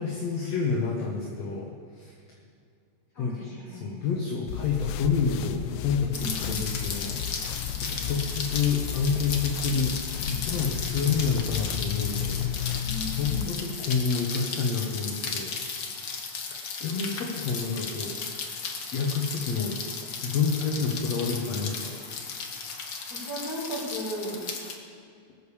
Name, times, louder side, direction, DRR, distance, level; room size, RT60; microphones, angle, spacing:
voice 1, 0.0-2.1 3.2-7.2 7.8-10.0 10.3-15.6 16.5-18.6 18.9-19.8 20.0-22.0, left 5 dB, 65° left, -1 dB, 2.4 m, -29 dB
voice 2, 3.1-4.1 6.1-6.6 12.8-13.7 23.1-24.4, equal, 30° left, -6 dB, 5.0 m, -36 dB
sound 1, 4.5-13.5, left 11 dB, 90° left, 2.1 m, -33 dB
Rain, 6.1-24.7, left 5 dB, 50° left, 1.5 m, -35 dB
19.5 x 7.0 x 7.0 m, 2.4 s
omnidirectional pair, 3.3 m